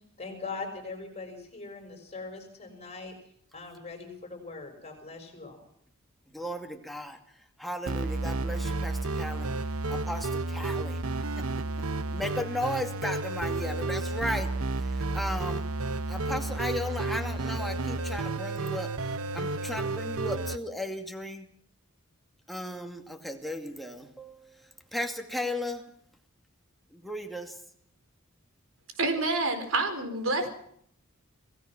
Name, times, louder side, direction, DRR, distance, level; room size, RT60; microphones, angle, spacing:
voice 1, 0.2-3.1 3.5-5.6, left 4 dB, 30° left, 5 dB, 6.0 m, -41 dB
voice 2, 6.3-7.2 7.6-9.5 9.9-11.0 11.4-11.5 12.1-14.5 14.9-15.7 16.1-18.9 19.3-21.5 22.5-25.8 26.9-27.5, left 1 dB, ahead, 3 dB, 2.3 m, -35 dB
sound 1, 7.9-20.6, right 2 dB, 90° right, 1.0 m, -31 dB
voice 3, 29.0-30.5, right 2 dB, 70° right, 8 dB, 4.4 m, -27 dB
27.0 x 17.5 x 6.1 m, 0.67 s
head